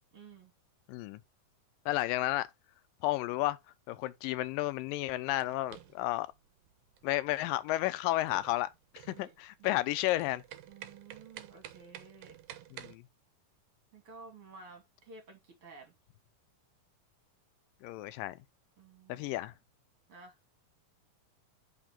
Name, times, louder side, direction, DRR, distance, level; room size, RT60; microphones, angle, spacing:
voice 1, 0.1-0.5 9.1-9.3 9.6-9.7 10.7-12.4 13.9-15.9 18.8-19.3 20.1-20.3, right 4 dB, 45° right, 2.9 m, -53 dB
voice 2, 0.9-1.2 1.9-2.5 3.0-3.6 3.9-6.3 7.0-8.7 8.9-10.4 12.7-13.0 17.8-18.4 19.1-19.5, left 16 dB, 90° left, 2.3 m, -32 dB
sound 1, 4.9-13.0, right 11 dB, 80° right, 2.3 m, -52 dB
5.6 x 3.7 x 5.8 m
omnidirectional pair, 3.9 m